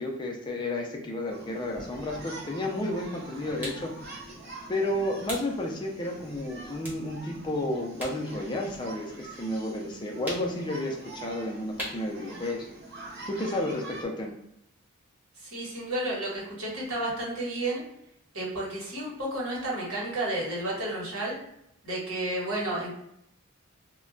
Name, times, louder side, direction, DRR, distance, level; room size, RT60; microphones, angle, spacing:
voice 1, 0.0-3.9 4.7-12.7 13.3-14.3, left 1 dB, 20° left, 0 dB, 0.4 m, -32 dB
sound 1, 1.3-14.0, right 2 dB, 50° right, 0.8 m, -45 dB
sound 2, 3.6-3.9 5.3-5.5 6.0-6.2 6.8-8.2 8.5-9.6 10.2-10.7 11.8-12.1, equal, 10° right, 0.7 m, -38 dB
voice 2, 15.4-17.8 18.3-21.4 21.8-22.9, right 1 dB, 90° right, -4 dB, 1.1 m, -32 dB
2.2 x 2.1 x 3.7 m, 0.78 s
head